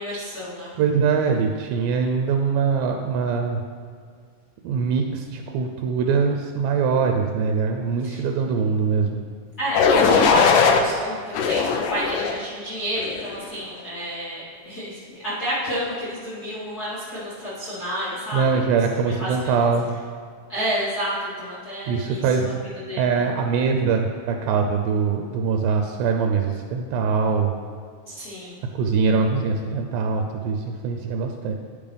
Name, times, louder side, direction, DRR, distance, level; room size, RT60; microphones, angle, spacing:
voice 1, 0.0-0.7 8.0-8.2 9.6-18.6 19.0-19.7 20.5-22.5 22.9-23.1 28.1-28.6, equal, 50° left, -10 dB, 1.1 m, -30 dB
voice 2, 0.8-3.6 4.6-9.2 18.3-19.9 21.9-22.6 23.0-27.5 28.7-31.5, right 5 dB, 85° right, 4 dB, 2.3 m, -23 dB
sound 1, 9.7-10.8 11.3-12.4 13.0-13.3, left 5 dB, 80° left, 1.9 m, -19 dB
10.5 x 5.2 x 3.4 m, 2.1 s
omnidirectional pair, 4.1 m